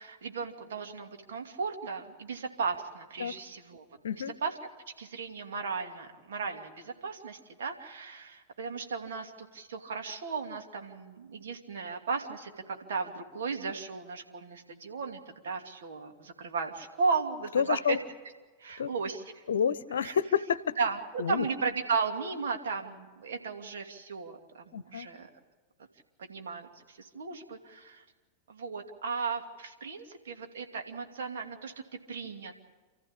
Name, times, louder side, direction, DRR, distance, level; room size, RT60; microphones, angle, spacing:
voice 1, 0.0-3.8 4.4-4.5 5.0-18.0 18.6-19.4 20.0-20.2 20.8-25.3 26.2-28.0 28.5-32.6, right 5 dB, 60° right, 4 dB, 2.7 m, -35 dB
voice 2, 17.5-18.0 18.8-18.9 19.5-20.8 21.2-21.5 24.7-25.1, left 7 dB, 65° left, 18 dB, 0.9 m, -29 dB
28.5 x 14.5 x 8.7 m, 1.3 s
figure-of-eight pair, 90°, 0 cm